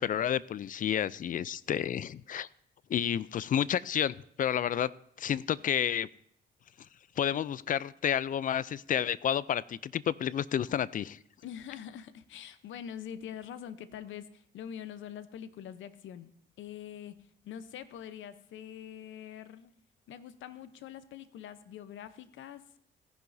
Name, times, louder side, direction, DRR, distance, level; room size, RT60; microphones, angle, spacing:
voice 1, 0.0-2.5 2.9-4.9 5.2-6.1 7.2-11.2, left 9 dB, 45° left, 20 dB, 0.4 m, -30 dB
voice 2, 11.4-16.3 16.6-17.2 17.4-19.7 20.1-22.6, left 9 dB, 75° left, 13 dB, 0.8 m, -44 dB
17.5 x 10.5 x 2.7 m, 0.67 s
cardioid pair, 90°, 20 cm